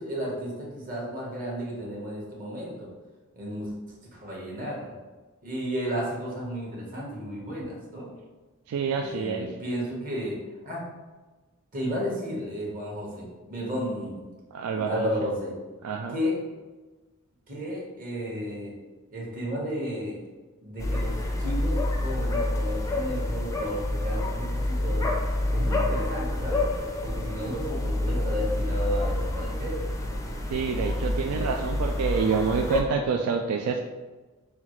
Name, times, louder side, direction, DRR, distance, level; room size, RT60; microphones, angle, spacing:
voice 1, 0.0-2.9 3.3-3.7 4.1-4.9 5.4-8.1 9.0-10.4 10.6-10.8 11.7-14.3 14.8-15.5 16.1-16.4 17.5-18.7 19.1-20.2 20.6-21.1 21.4-25.1 25.5-26.6 27.0-29.7 31.2-31.5, equal, 40° right, -4 dB, 1.1 m, -33 dB
voice 2, 8.7-9.5 14.5-15.1 15.8-16.2 30.5-33.8, right 5 dB, 90° right, 3 dB, 0.3 m, -27 dB
sound 1, 20.8-32.8, left 1 dB, 15° left, 0.4 m, -28 dB
5.6 x 2.4 x 3.0 m, 1.2 s
head